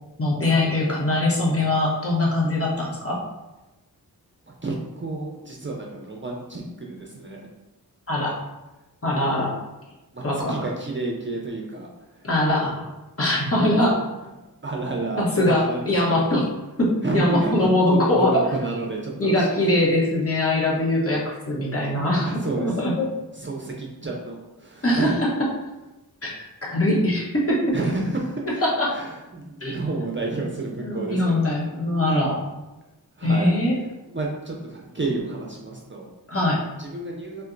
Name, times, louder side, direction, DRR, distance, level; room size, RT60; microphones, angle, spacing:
voice 1, 0.2-3.2 8.1-8.4 9.0-9.6 10.2-10.6 12.2-12.9 13.2-14.0 15.2-16.4 16.8-18.3 19.2-22.3 22.6-23.1 24.8-25.1 26.2-26.3 26.6-27.7 28.6-29.0 29.6-29.8 30.8-32.4 33.2-33.7 36.3-36.6, left 1 dB, 35° left, -5 dB, 1.0 m, -22 dB
voice 2, 4.5-7.5 10.1-12.3 14.6-16.4 17.0-19.7 21.8-22.9 23.3-25.2 27.1-27.2 27.7-28.4 28.9-31.5 33.1-36.1 36.8-37.4, right 2 dB, 30° right, -1 dB, 0.5 m, -30 dB
4.1 x 2.2 x 2.5 m, 1.1 s
wide cardioid pair, 60°, 38 cm